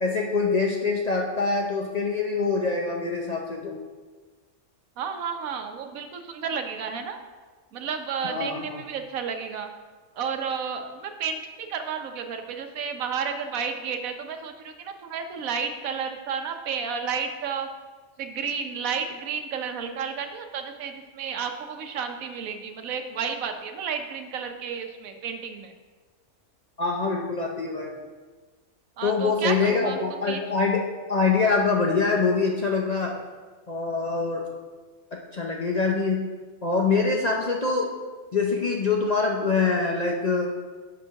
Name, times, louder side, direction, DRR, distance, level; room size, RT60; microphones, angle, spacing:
voice 1, 0.0-3.8 8.2-8.8 26.8-28.0 29.0-30.8 31.1-33.1 33.7-34.5 35.3-36.3 36.6-37.9 38.3-40.5, left 4 dB, 45° left, -1 dB, 0.5 m, -24 dB
voice 2, 5.0-7.2 7.7-9.7 10.2-17.7 18.2-25.7 29.0-30.0 30.3-30.4, right 6 dB, 85° right, 6 dB, 1.2 m, -32 dB
6.1 x 5.3 x 5.6 m, 1.4 s
omnidirectional pair, 1.4 m